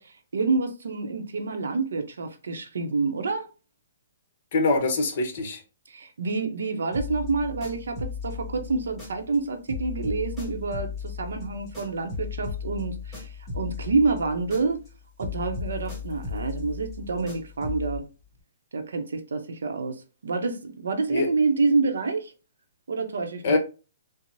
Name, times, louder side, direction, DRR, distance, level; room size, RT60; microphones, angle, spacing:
voice 1, 0.0-3.5 5.9-13.3 13.5-14.8 15.2-18.0 18.7-22.3 22.9-23.6, right 4 dB, 85° right, 0.7 m, -28 dB
voice 2, 4.5-5.6 21.1-21.3 23.4-23.6, left 3 dB, 45° left, 0.9 m, -23 dB
sound 1, 6.9-9.4 9.7-14.9 15.2-18.0, left 6 dB, ahead, 1.7 m, -36 dB
4.6 x 2.0 x 2.6 m
hypercardioid pair, 160°, 0 cm